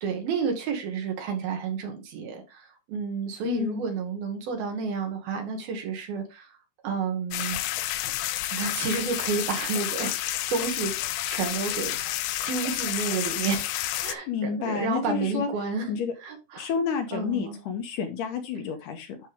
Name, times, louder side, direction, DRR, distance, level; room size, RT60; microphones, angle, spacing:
voice 1, 0.0-6.6 6.8-7.6 8.1-8.2 8.5-10.2 10.5-10.9 11.3-12.2 12.5-13.7 14.0-15.9 16.2-16.7 17.1-17.6, right 5 dB, 75° right, 3.8 m, -30 dB
voice 2, 3.4-3.8 14.3-15.5 15.9-16.1 16.6-19.2, left 6 dB, 70° left, 2.3 m, -29 dB
sound 1, 7.3-14.1, left 14 dB, 85° left, 1.7 m, -30 dB
11.5 x 4.6 x 3.6 m
omnidirectional pair, 4.3 m